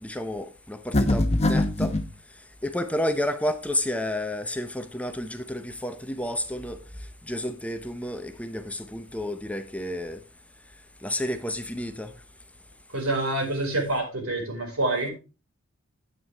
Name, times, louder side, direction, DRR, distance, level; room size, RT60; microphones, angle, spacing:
voice 1, 0.0-1.9 2.6-6.8 7.3-10.2 11.0-12.1, left 1 dB, 5° left, 0.7 m, -31 dB
sound 1, 0.9-2.1, left 1 dB, 30° left, 1.0 m, -22 dB
voice 2, 12.9-15.1, right 2 dB, 85° right, 4.7 m, -27 dB
9.4 x 9.1 x 3.4 m
head